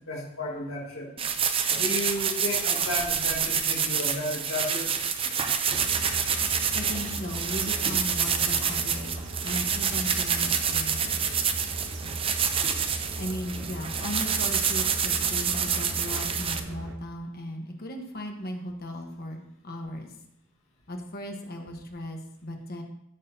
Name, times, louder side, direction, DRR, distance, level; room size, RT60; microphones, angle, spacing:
voice 1, 0.1-1.1 1.7-4.9, left 1 dB, 65° left, -3 dB, 2.0 m, -33 dB
sound 1, 1.2-16.6, right 7 dB, 25° right, 0.5 m, -27 dB
sound 2, 5.7-16.9, right 1 dB, 55° right, 1.0 m, -38 dB
voice 2, 6.7-11.2 13.2-20.1 20.9-22.8, equal, 45° left, 2 dB, 1.2 m, -37 dB
16.0 x 6.5 x 2.8 m, 0.79 s
head